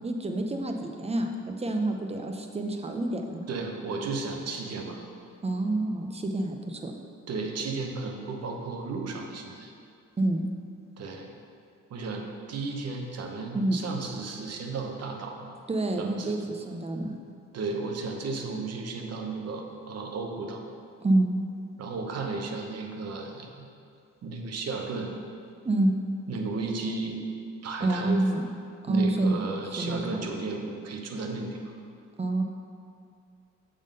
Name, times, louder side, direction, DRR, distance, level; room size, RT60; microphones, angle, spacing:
voice 1, 0.0-3.4 5.4-6.9 10.2-10.4 13.5-13.8 15.7-17.1 21.0-21.3 25.6-25.9 27.8-28.4 28.8-29.4 29.8-30.2 32.2-32.4, right 2 dB, 20° right, 4 dB, 0.7 m, -27 dB
voice 2, 3.5-5.0 7.3-9.7 11.0-11.3 11.9-15.6 16.0-16.4 17.5-20.6 21.8-23.6 24.2-25.1 26.3-27.2 27.6-28.2 28.9-31.7, right 3 dB, 55° right, 3 dB, 0.9 m, -34 dB
7.0 x 3.8 x 5.2 m, 2.5 s
cardioid pair, 90°, 30 cm